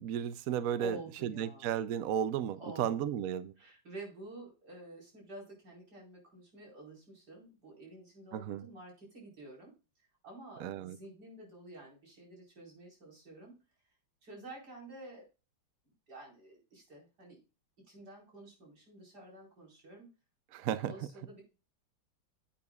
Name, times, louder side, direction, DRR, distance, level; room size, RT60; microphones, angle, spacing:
voice 1, 0.0-3.5 8.3-8.7 10.6-11.0 20.5-20.9, right 9 dB, 75° right, 0.8 m, -34 dB
voice 2, 0.8-1.7 2.6-3.1 3.6-9.7 10.2-13.6 14.2-15.3 15.8-17.4 17.8-20.1 20.9-21.4, right 1 dB, 50° right, 5.1 m, -50 dB
10.0 x 8.7 x 2.4 m
omnidirectional pair, 2.2 m